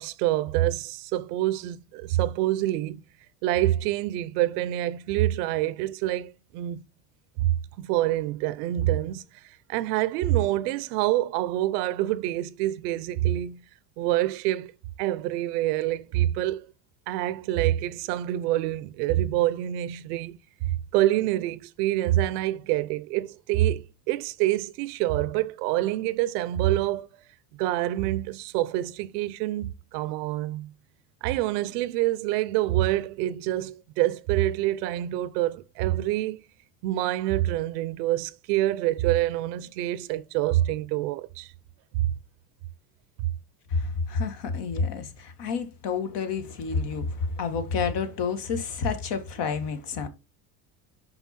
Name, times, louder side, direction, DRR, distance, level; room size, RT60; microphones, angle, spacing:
voice 1, 0.0-3.0 3.4-6.8 7.4-9.2 9.7-13.6 14.0-14.7 15.0-16.6 17.1-20.4 20.6-27.1 27.5-30.7 31.2-36.4 36.8-41.5 42.0-42.1, right 14 dB, 90° right, 0.8 m, -26 dB
voice 2, 43.7-50.1, left 5 dB, 60° left, 1.7 m, -29 dB
5.8 x 5.5 x 4.2 m
supercardioid pair, 115°, 47 cm